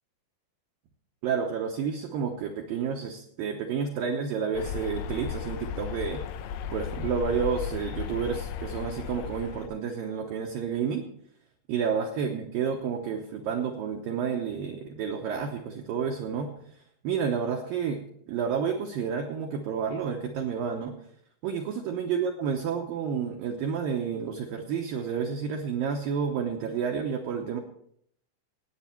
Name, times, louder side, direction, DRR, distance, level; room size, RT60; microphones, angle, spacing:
voice 1, 1.2-6.2 6.7-11.1 11.7-16.5 17.0-21.0 21.4-27.6, right 6 dB, 75° right, 3 dB, 2.1 m, -30 dB
sound 1, 4.5-9.7, left 8 dB, 85° left, 3.2 m, -35 dB
18.5 x 8.5 x 4.5 m, 0.67 s
omnidirectional pair, 5.3 m